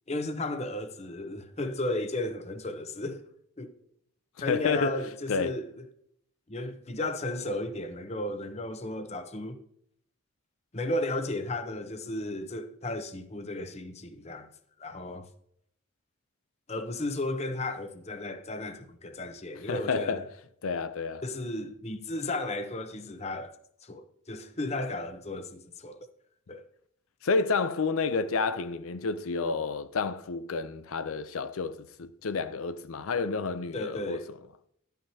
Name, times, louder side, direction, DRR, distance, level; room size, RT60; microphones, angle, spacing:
voice 1, 0.1-3.2 3.6-3.8 4.4-5.8 6.5-9.6 10.7-14.5 14.8-15.3 16.7-20.2 21.2-23.5 23.8-26.0 26.5-26.6 33.7-34.3, left 2 dB, 30° left, 0.8 m, -34 dB
voice 2, 4.5-5.0 5.3-5.6 19.7-20.2 20.6-21.2 27.2-34.2, left 4 dB, 80° left, 0.5 m, -30 dB
11.5 x 9.2 x 2.8 m
head